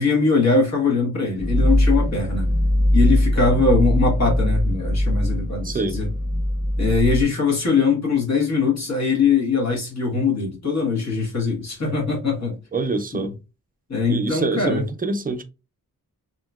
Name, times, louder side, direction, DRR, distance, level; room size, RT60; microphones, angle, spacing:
voice 1, 0.0-2.5 2.9-6.1 6.8-12.6 13.1-13.3 13.9-14.8, left 4 dB, 50° left, 1.3 m, -21 dB
sound 1, 1.4-7.2, left 1 dB, 25° left, 1.0 m, -21 dB
voice 2, 12.7-13.3 14.1-15.4, right 3 dB, 25° right, 0.4 m, -25 dB
2.8 x 2.7 x 2.2 m
wide cardioid pair, 115°, 35 cm